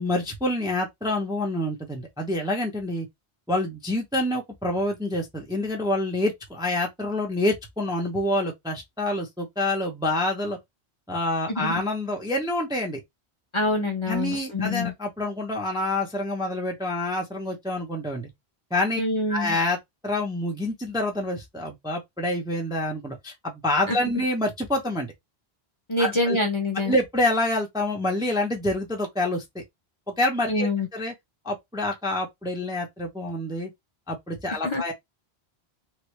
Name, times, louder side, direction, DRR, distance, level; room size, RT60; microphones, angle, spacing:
voice 1, 0.0-3.1 3.5-10.6 11.1-13.0 14.1-18.3 18.7-19.0 19.3-19.8 20.0-25.1 26.0-26.4 26.8-29.6 30.1-31.1 31.4-33.7 34.1-34.9, left 1 dB, 5° right, 0.7 m, -27 dB
voice 2, 11.5-11.8 13.5-14.9 19.0-19.6 23.9-24.0 25.9-26.9 30.5-30.9 34.6-34.8, left 2 dB, 30° left, 0.8 m, -25 dB
3.1 x 2.6 x 3.1 m
omnidirectional pair, 1.1 m